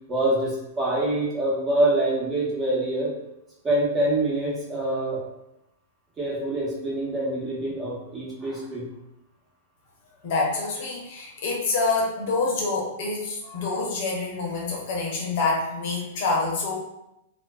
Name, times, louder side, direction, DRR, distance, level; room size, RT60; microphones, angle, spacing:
voice 1, 0.1-3.1 3.6-5.2 6.2-8.9 13.5-13.6, right 1 dB, 25° right, -5 dB, 0.9 m, -25 dB
voice 2, 10.2-16.7, left 3 dB, 60° left, -2 dB, 0.7 m, -26 dB
2.4 x 2.2 x 2.3 m, 0.87 s
hypercardioid pair, 105°, 0 cm